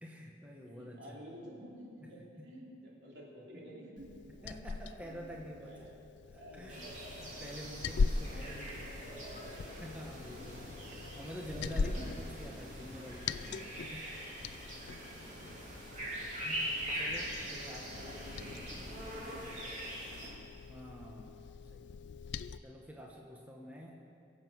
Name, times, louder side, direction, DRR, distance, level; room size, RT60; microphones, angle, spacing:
voice 1, 0.0-1.2 4.4-5.9 6.3-6.8 7.2-8.8 9.8-13.6 13.9-14.0 16.4-17.9 20.7-22.0 22.6-24.0, equal, 10° right, -2 dB, 1.2 m, -47 dB
voice 2, 0.6-4.1 4.8-7.0 8.0-9.3 14.7-16.1 17.5-20.3, equal, 80° right, -4 dB, 3.2 m, -53 dB
Liquid, 4.0-22.6, left 4 dB, 85° left, 0.4 m, -41 dB
sound 1, 6.7-20.3, equal, 40° right, 3.3 m, -43 dB
22.5 x 7.6 x 6.3 m, 2.6 s
head